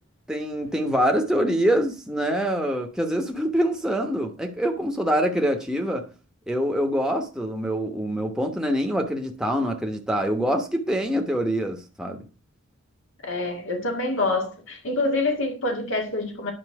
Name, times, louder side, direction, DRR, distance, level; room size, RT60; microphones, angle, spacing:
voice 1, 0.3-6.0 6.5-12.2, equal, 5° right, 1.2 m, -25 dB
voice 2, 13.2-16.5, left 2 dB, 65° left, 2.0 m, -26 dB
9.9 x 6.1 x 4.8 m
head